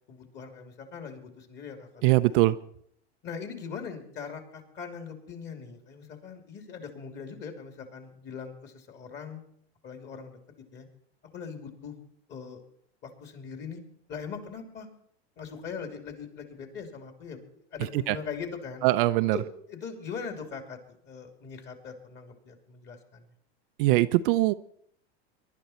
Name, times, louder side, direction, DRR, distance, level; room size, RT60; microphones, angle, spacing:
voice 1, 0.1-2.4 3.2-9.4 9.8-10.4 10.7-10.9 11.3-11.9 12.3-12.6 13.0-13.8 14.1-14.9 15.4-18.9 19.3-23.3, left 6 dB, 30° left, 5 dB, 2.9 m, -41 dB
voice 2, 2.0-2.6 18.1-18.2 18.8-19.4 23.8-24.5, right 18 dB, 55° right, 12 dB, 0.6 m, -22 dB
22.5 x 11.5 x 4.3 m, 0.65 s
hypercardioid pair, 120°, 33 cm